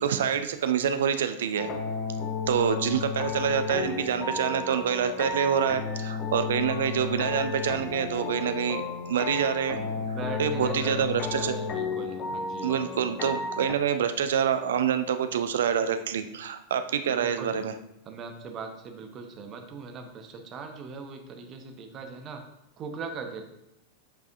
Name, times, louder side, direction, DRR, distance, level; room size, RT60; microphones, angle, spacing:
voice 1, 0.0-1.7 2.5-9.8 10.4-11.5 12.6-17.7, right 8 dB, 60° right, 9 dB, 0.5 m, -26 dB
sound 1, 1.6-13.8, left 5 dB, 30° left, 0.7 m, -33 dB
voice 2, 9.8-12.8 17.0-17.7 18.0-22.4 22.8-23.4, right 4 dB, 30° right, 4 dB, 0.9 m, -40 dB
7.8 x 4.7 x 2.6 m, 0.85 s
figure-of-eight pair, 90°, 0 cm